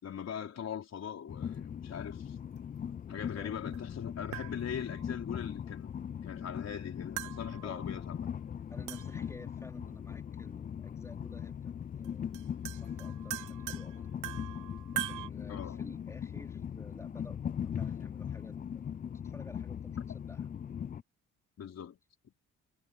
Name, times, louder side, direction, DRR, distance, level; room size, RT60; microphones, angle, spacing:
voice 1, 0.0-2.4 3.1-5.9 6.2-8.3 15.5-15.8 21.6-22.0, left 8 dB, 55° left, 4.3 m, -41 dB
Train, 1.3-21.0, left 8 dB, 30° left, 0.4 m, -40 dB
sound 1, 3.7-3.8 4.3-5.1 7.2-8.0 8.9-9.4 10.9-11.0 12.0-12.1 12.3-15.3, right 20 dB, 85° right, 0.5 m, -42 dB
voice 2, 8.7-12.3 12.6-14.0 14.9-19.0 19.2-20.5, left 1 dB, 10° left, 3.8 m, -52 dB
cardioid pair, 90°, 30 cm